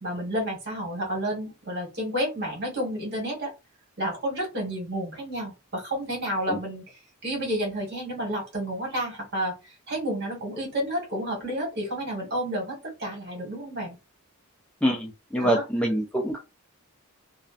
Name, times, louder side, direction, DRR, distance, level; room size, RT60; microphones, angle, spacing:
voice 1, 0.0-3.5 4.0-6.8 7.2-14.0 15.4-15.6, equal, 50° right, 0 dB, 1.4 m, -30 dB
voice 2, 14.8-16.4, right 1 dB, 5° left, -1 dB, 0.4 m, -25 dB
2.4 x 2.0 x 2.4 m, 0.26 s
head